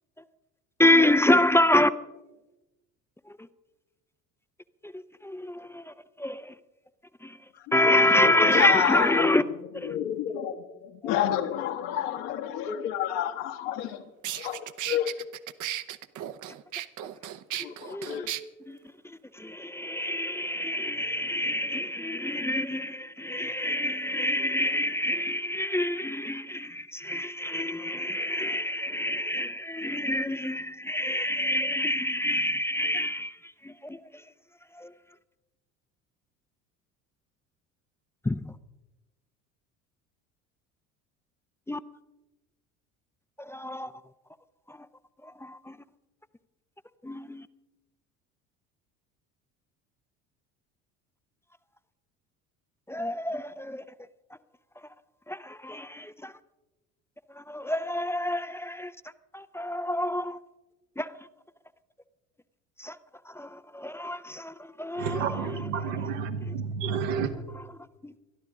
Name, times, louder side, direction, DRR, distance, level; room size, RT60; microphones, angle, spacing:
voice 1, 0.8-1.9 3.3-3.5 4.8-5.6 6.2-6.5 7.2-7.4 7.7-9.4 9.7-10.0 17.9-18.3 18.7-18.8 19.0-34.2 34.7-34.9 38.2-38.5 41.7-41.8 43.4-43.9 44.7-44.9 45.2-45.8 47.0-47.5 52.9-53.8 55.3-56.3 57.3-58.9 59.3-60.4 61.0-61.1 62.8-63.0 63.3-65.4, left 1 dB, 5° left, 0.5 m, -27 dB
voice 2, 7.5-9.4 9.8-14.0 14.3-15.2 17.6-18.3, left 10 dB, 65° left, 1.5 m, -30 dB
sound 1, 13.8-13.9 14.2-18.4, right 13 dB, 50° right, 0.9 m, -35 dB
voice 3, 64.9-67.3, right 6 dB, 80° right, 1.6 m, -30 dB
22.0 x 13.0 x 3.7 m
hypercardioid pair, 65°, 39 cm